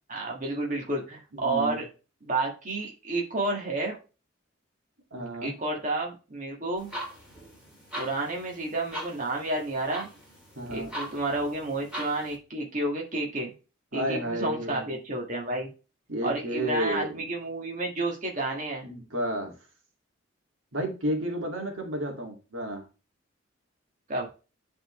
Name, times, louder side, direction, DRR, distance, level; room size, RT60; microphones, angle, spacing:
voice 1, 0.1-1.9 2.2-3.9 5.4-7.0 7.9-10.1 10.7-13.5 13.9-15.7 16.2-18.9 24.1-24.3, right 2 dB, 40° right, -1 dB, 1.9 m, -30 dB
voice 2, 1.3-1.8 5.1-5.5 10.6-10.9 13.9-14.9 16.1-17.2 18.8-19.5 20.7-22.8, equal, 75° right, 2 dB, 2.4 m, -31 dB
sound 1, 6.8-12.3, right 1 dB, 5° right, 3.6 m, -41 dB
10.5 x 4.5 x 3.2 m, 0.32 s
head